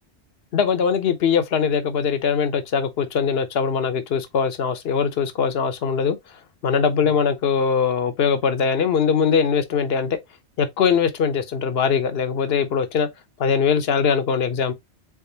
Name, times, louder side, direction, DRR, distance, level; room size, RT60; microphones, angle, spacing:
voice 1, 0.5-6.2 6.6-10.2 10.6-13.1 13.4-14.7, left 6 dB, 65° left, 0.9 m, -21 dB
3.7 x 3.6 x 2.7 m
omnidirectional pair, 1.2 m